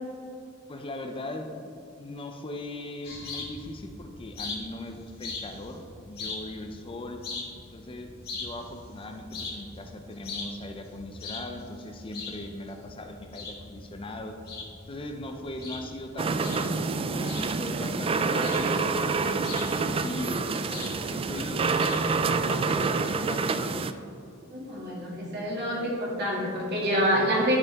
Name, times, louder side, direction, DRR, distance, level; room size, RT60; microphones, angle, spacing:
voice 1, 0.7-7.2 7.7-14.4 14.9-20.5 21.1-21.8 22.4-23.6, left 1 dB, 25° left, 4 dB, 0.5 m, -39 dB
sound 1, 3.0-22.8, left 3 dB, 50° left, 1.7 m, -41 dB
sound 2, 16.2-23.9, right 4 dB, 25° right, 0.3 m, -27 dB
voice 2, 24.5-27.6, equal, 50° right, -4 dB, 2.3 m, -27 dB
11.5 x 6.6 x 3.5 m, 2.5 s
head